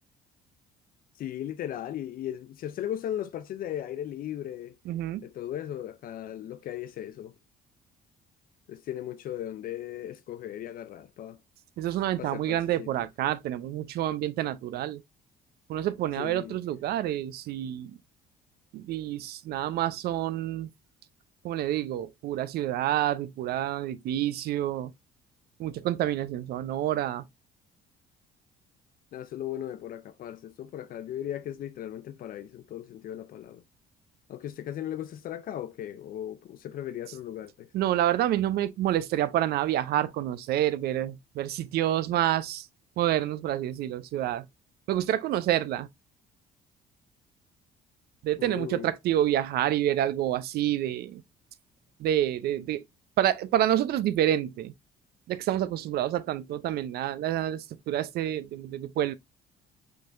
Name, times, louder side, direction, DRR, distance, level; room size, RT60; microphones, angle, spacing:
voice 1, 1.2-4.8 5.2-7.3 8.7-11.4 12.2-13.1 16.2-16.6 29.1-33.6 34.3-37.7 48.4-48.9, left 11 dB, 60° left, 0.5 m, -37 dB
voice 2, 4.9-5.2 11.8-15.0 15.7-18.0 18.7-20.7 21.4-24.9 25.6-27.2 37.7-42.7 43.0-44.5 44.9-45.9 48.2-51.2 52.0-52.8 53.2-54.7 55.3-59.1, right 12 dB, 70° right, 0.5 m, -28 dB
5.3 x 3.8 x 2.5 m
cardioid pair, 110°, 17 cm